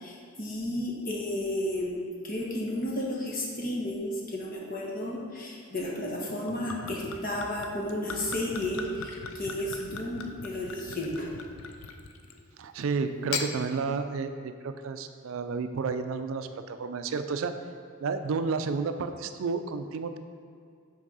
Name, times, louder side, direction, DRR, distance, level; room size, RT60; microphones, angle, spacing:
voice 1, 0.0-11.3, left 1 dB, 40° left, -3 dB, 1.2 m, -33 dB
Gurgling / Chink clink / Liquid, 6.3-12.4 13.1-13.5, left 5 dB, 65° left, 0.5 m, -39 dB
voice 2, 12.6-17.5 18.0-20.2, right 4 dB, 65° right, 9 dB, 0.4 m, -31 dB
6.1 x 4.6 x 5.5 m, 2.4 s
head